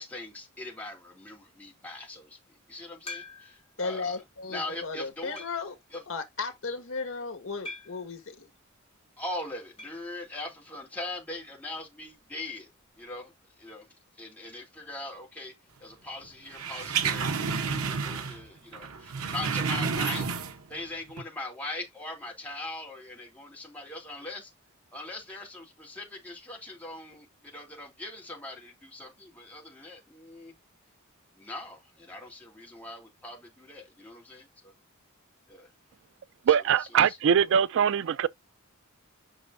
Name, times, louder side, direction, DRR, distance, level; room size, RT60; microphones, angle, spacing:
voice 1, 0.0-4.2 4.5-5.4 5.9-6.0 9.2-12.7 13.0-13.3 13.6-13.9 14.2-15.5 15.8-20.3 20.7-24.5 24.9-30.5 31.4-34.7 35.5-35.7 36.5-37.2, left 2 dB, 10° left, 3.2 m, -41 dB
sound 1, 3.1-3.8 4.4-4.5 5.4-5.8 7.7-8.1 9.8-10.1 10.3-10.4 10.7-10.8 12.8-12.9, left 3 dB, 30° left, 3.4 m, -43 dB
voice 2, 3.8-5.7 6.1-8.5, left 4 dB, 70° left, 1.7 m, -35 dB
sound 2, 16.5-18.5 18.7-20.8 21.1-21.2, right 5 dB, 90° right, 1.0 m, -30 dB
voice 3, 36.5-38.3, right 8 dB, 60° right, 0.3 m, -22 dB
8.9 x 6.0 x 2.6 m
head